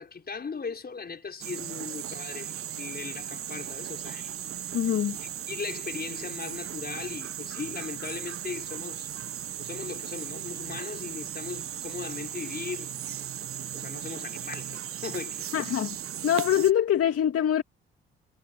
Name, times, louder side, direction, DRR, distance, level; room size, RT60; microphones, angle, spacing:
voice 1, 0.0-4.4 5.2-9.1 9.6-12.9 13.7-15.5, left 5 dB, 30° left, 5.4 m, -38 dB
sound 1, 1.4-16.7, right 10 dB, 45° right, 1.4 m, -37 dB
voice 2, 4.7-5.2 15.5-16.0 16.2-17.6, left 10 dB, 50° left, 2.7 m, -24 dB
hypercardioid pair, 50°, 31 cm